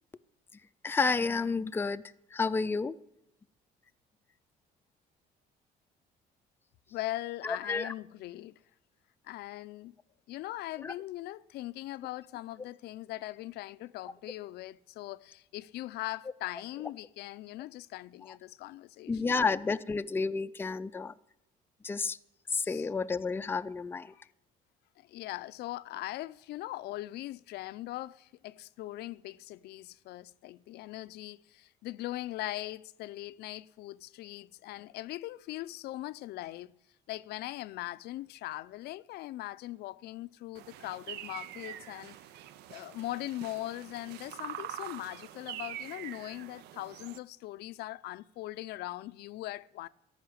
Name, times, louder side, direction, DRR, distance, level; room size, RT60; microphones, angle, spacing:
voice 1, 0.8-2.0 2.3-3.0 7.4-7.9 10.8-10.9 18.3-18.4 19.1-21.1 21.8-22.2 22.5-24.1, left 4 dB, 15° left, 0.4 m, -31 dB
voice 2, 6.9-8.6 9.2-9.9 10.3-19.4 22.6-22.9 24.2-24.3 25.0-36.8 37.1-42.2 42.7-49.9, left 16 dB, 75° left, 0.5 m, -40 dB
sound 1, 40.5-47.2, right 12 dB, 80° right, 0.6 m, -44 dB
13.5 x 5.9 x 9.5 m
cardioid pair, 110°, 17 cm